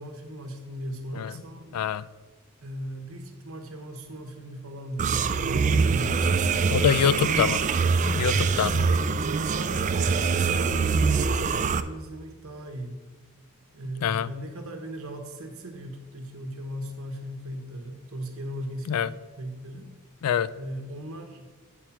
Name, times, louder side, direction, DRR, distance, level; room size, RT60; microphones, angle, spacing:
voice 1, 0.0-1.8 2.6-6.5 8.8-13.0 13.7-19.1 19.4-19.9 20.5-21.4, right 1 dB, 65° right, 4 dB, 1.0 m, -38 dB
voice 2, 1.7-2.0 6.7-7.6 8.1-8.9 14.0-14.3 18.9-19.1 20.2-20.5, left 8 dB, 85° left, 17 dB, 0.3 m, -25 dB
sound 1, 5.0-11.8, right 5 dB, 35° right, 0.3 m, -24 dB
8.6 x 4.6 x 5.8 m, 1.3 s
head